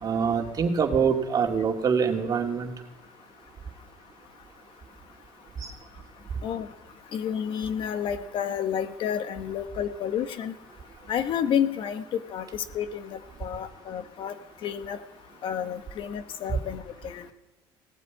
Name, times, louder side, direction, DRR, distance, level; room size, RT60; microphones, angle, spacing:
voice 1, 0.0-2.7 5.6-5.7 16.5-16.6, right 6 dB, 40° right, 2 dB, 2.4 m, -25 dB
voice 2, 7.1-10.5 11.1-14.3 14.6-15.0 15.4-17.3, left 8 dB, 60° left, 10 dB, 1.1 m, -30 dB
18.0 x 8.3 x 9.5 m, 1.1 s
cardioid pair, 100°, 10 cm